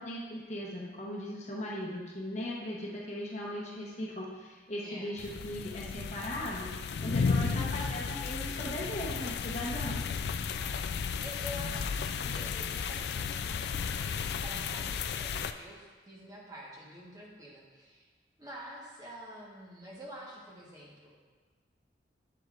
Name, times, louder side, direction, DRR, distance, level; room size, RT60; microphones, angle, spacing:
voice 1, 0.0-10.0, equal, 40° left, -4 dB, 1.0 m, -38 dB
voice 2, 4.8-5.1 7.1-7.6 10.6-18.1 18.4-21.2, equal, 20° right, -5 dB, 1.3 m, -48 dB
sound 1, 5.2-15.5, left 6 dB, 65° left, 0.3 m, -34 dB
7.9 x 7.6 x 2.5 m, 1.4 s
head